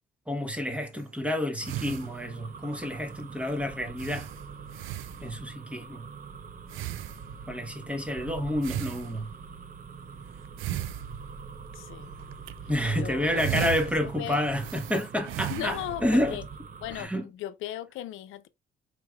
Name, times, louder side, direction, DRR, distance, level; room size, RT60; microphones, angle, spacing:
voice 1, 0.3-4.3 5.2-6.1 7.5-9.3 12.7-16.4 16.9-17.3, equal, 5° right, 1.1 m, -29 dB
sound 1, 0.7-1.1 1.7-2.6 3.1-3.2 3.5-3.6 4.0-5.6 6.7-7.6 8.6-9.6 10.5-11.7 12.2-12.5 13.1-16.2, right 14 dB, 85° right, 0.4 m, -37 dB
sound 2, 1.6-17.0, right 5 dB, 45° right, 0.8 m, -43 dB
voice 2, 11.7-12.1 13.0-14.4 15.5-16.4 16.8-18.5, left 13 dB, 85° left, 0.5 m, -37 dB
4.8 x 3.2 x 2.3 m
cardioid pair, 90°, 20 cm